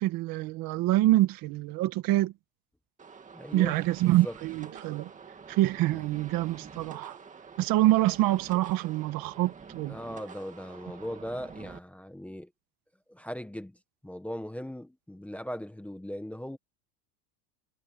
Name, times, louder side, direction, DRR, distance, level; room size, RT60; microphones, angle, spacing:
voice 1, 0.0-2.3 3.5-5.1 5.5-7.2 7.6-10.0, right 16 dB, 50° right, 1.5 m, -26 dB
sound 1, 3.0-11.8, right 5 dB, 15° right, 2.1 m, -48 dB
voice 2, 3.3-3.8 4.0-4.4 5.9-6.0 9.9-12.5 13.1-13.8 14.0-16.6, equal, 5° left, 1.2 m, -39 dB
cardioid pair, 160°, 45 cm